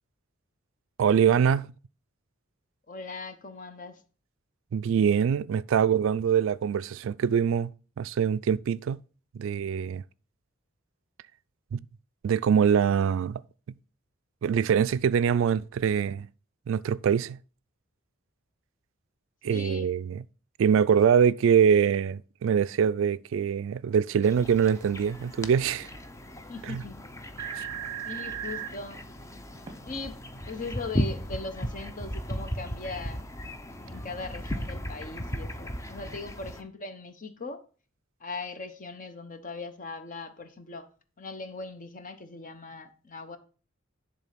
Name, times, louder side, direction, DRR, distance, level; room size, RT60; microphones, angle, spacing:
voice 1, 1.0-1.7 4.7-7.7 8.0-9.0 9.3-10.0 11.7-11.8 12.2-13.4 14.4-16.3 16.7-17.4 19.4-20.2 20.6-25.9 26.7-26.8 27.6-27.7, right 7 dB, 65° right, 0.3 m, -24 dB
voice 2, 2.9-4.0 19.4-19.9 26.5-27.0 28.0-29.0 29.9-30.2 30.5-33.2 33.8-37.6 38.2-40.9 41.2-43.4, left 3 dB, 40° left, 0.9 m, -39 dB
sound 1, 24.2-36.6, equal, 15° left, 0.6 m, -36 dB
sound 2, 27.0-27.1 27.4-28.7 29.7-29.8, right 10 dB, 20° right, 1.0 m, -35 dB
10.5 x 3.8 x 5.9 m
head